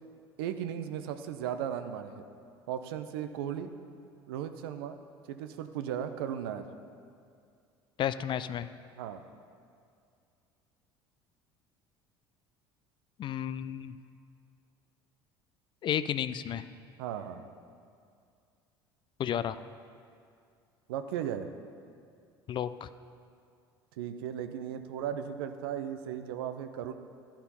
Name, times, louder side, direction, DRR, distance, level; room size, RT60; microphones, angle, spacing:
voice 1, 0.4-2.2 2.7-3.7 4.3-4.9 5.3-6.6 9.0-9.2 17.0-17.5 20.9-21.5 24.0-26.9, right 9 dB, 70° right, 9 dB, 0.6 m, -36 dB
voice 2, 8.0-8.7 13.2-14.0 15.8-16.7 19.2-19.6 22.5-22.9, left 10 dB, 40° left, 14 dB, 0.4 m, -32 dB
13.0 x 4.4 x 5.5 m, 2.3 s
hypercardioid pair, 65°, 13 cm